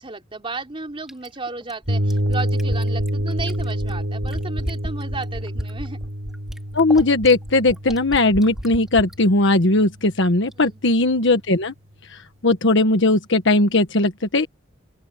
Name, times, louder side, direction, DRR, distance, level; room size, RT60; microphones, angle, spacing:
voice 1, 0.0-6.0 10.6-10.8, right 3 dB, 30° right, 3.2 m, -34 dB
Fill (with liquid), 1.1-9.2 10.5-10.6, equal, ahead, 2.3 m, -33 dB
sound 1, 1.9-9.6, equal, 85° right, 4.5 m, -27 dB
voice 2, 6.7-11.7 12.4-14.5, left 2 dB, 65° left, 1.5 m, -18 dB
open air
head